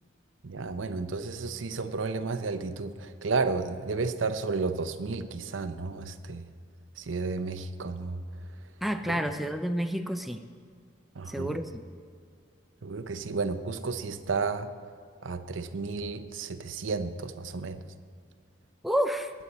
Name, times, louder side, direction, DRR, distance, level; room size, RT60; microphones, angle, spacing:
voice 1, 0.4-6.5 7.0-8.2 9.1-9.2 11.2-11.5 12.8-14.7 15.2-17.8, right 4 dB, 90° right, 10 dB, 0.7 m, -32 dB
voice 2, 8.8-10.4 11.3-11.8 18.8-19.3, equal, ahead, 7 dB, 0.5 m, -29 dB
20.0 x 8.2 x 4.2 m, 2.1 s
head